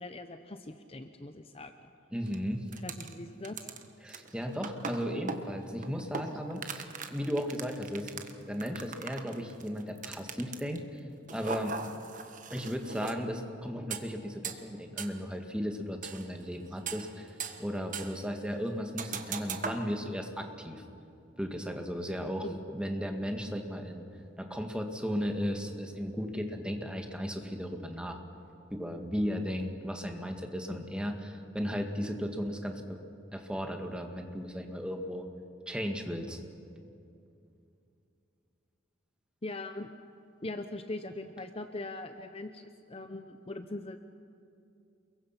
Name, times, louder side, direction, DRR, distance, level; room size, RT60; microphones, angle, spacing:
voice 1, 0.0-1.7 2.8-3.6 22.4-22.6 30.7-30.8 39.4-39.9 40.4-44.0, left 2 dB, 30° left, 8 dB, 0.8 m, -41 dB
voice 2, 2.1-2.7 4.0-8.1 8.5-11.0 11.3-11.8 12.5-20.8 21.4-22.4 22.7-24.0 24.4-28.2 28.7-33.0 33.3-35.3 35.7-36.4, equal, 5° right, 4 dB, 1.9 m, -35 dB
sound 1, 2.3-2.4 2.7-3.1 3.4-10.8 11.3-13.2 13.9-14.0 14.4-14.6 15.0-15.1 16.0-16.4 16.7-17.7 17.9-18.2 19.0-19.8, right 5 dB, 45° right, 1.5 m, -39 dB
29.0 x 22.5 x 5.9 m, 2.6 s
head